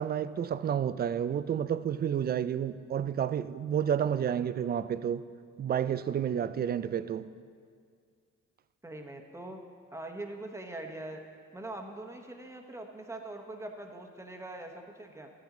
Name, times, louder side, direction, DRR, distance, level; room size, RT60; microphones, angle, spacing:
voice 1, 0.0-5.2 5.6-7.3, right 9 dB, 35° right, 0.4 m, -30 dB
voice 2, 8.8-9.6 9.9-11.2 11.5-15.3, right 2 dB, 10° right, 1.1 m, -42 dB
13.0 x 9.4 x 3.8 m
cardioid pair, 90°, 30 cm